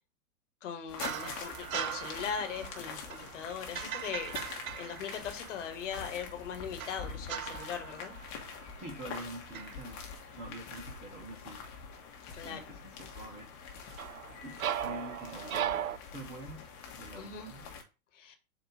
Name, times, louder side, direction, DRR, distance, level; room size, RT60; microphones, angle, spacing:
voice 1, 0.6-4.3 4.8-8.1 12.3-12.8 17.2-17.5 18.1-18.3, left 7 dB, 55° left, 5 dB, 1.7 m, -40 dB
sound 1, 0.9-17.8, left 5 dB, 35° left, 1.4 m, -45 dB
sound 2, 1.0-5.8 6.8-9.2 9.5-9.9 13.9-16.0, right 10 dB, 65° right, 0.6 m, -39 dB
voice 2, 8.8-10.1 10.4-11.7 12.4-13.6 14.4-16.6 17.0-17.7, right 1 dB, 15° right, 0 dB, 1.2 m, -46 dB
7.7 x 2.9 x 4.9 m, 0.30 s
figure-of-eight pair, 110°, 45 cm